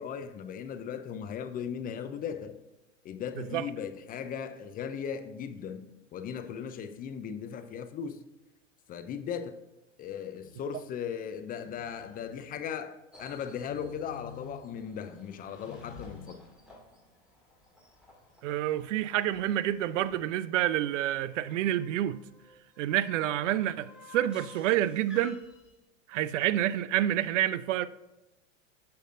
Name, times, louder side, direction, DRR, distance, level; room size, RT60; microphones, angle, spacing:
voice 1, 0.0-2.6 3.0-8.2 8.9-9.6 10.0-16.4, left 7 dB, 25° left, 0.4 m, -37 dB
Telephone, 10.4-10.7 11.6-12.7 13.6-14.8 15.6-16.3, left 7 dB, 55° left, 1.2 m, -49 dB
sound 1, 13.1-25.8, left 2 dB, ahead, 2.2 m, -55 dB
voice 2, 18.4-22.2 22.8-25.4 26.1-27.9, right 12 dB, 75° right, 0.5 m, -28 dB
6.8 x 6.4 x 2.5 m
hypercardioid pair, 105°, 37 cm